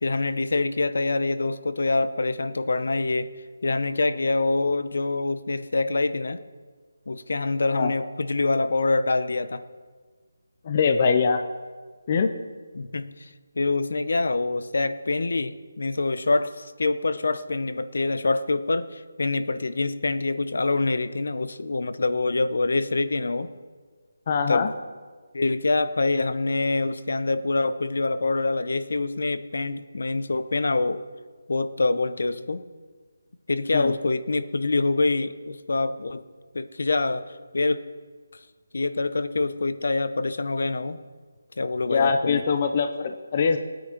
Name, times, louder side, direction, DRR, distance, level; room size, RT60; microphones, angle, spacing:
voice 1, 0.0-3.3 3.6-6.4 7.1-9.6 12.7-13.3 13.6-23.5 24.5-24.7 25.3-31.0 31.5-32.6 33.5-36.2 36.5-37.8 38.7-41.0 41.6-42.4, left 3 dB, 60° left, 12 dB, 0.7 m, -25 dB
voice 2, 10.6-11.4 12.1-12.3 24.3-24.7 33.7-33.9 41.9-43.6, left 5 dB, 25° left, 7 dB, 0.5 m, -22 dB
17.5 x 9.2 x 4.5 m, 1.5 s
hypercardioid pair, 175°, 0 cm